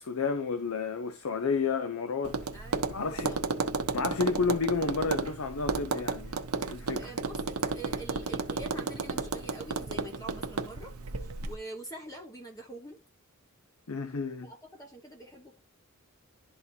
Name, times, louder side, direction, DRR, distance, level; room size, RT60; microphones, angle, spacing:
voice 1, 0.0-2.4 2.9-3.4 3.9-6.3 6.7-7.1 13.9-14.5, left 4 dB, 70° left, 0.6 m, -31 dB
Tap, 2.2-11.5, right 3 dB, 80° right, 0.8 m, -33 dB
voice 2, 2.5-3.4 7.0-10.9 11.2-13.0 14.4-15.6, right 1 dB, 15° left, 1.1 m, -45 dB
11.5 x 4.1 x 2.8 m
head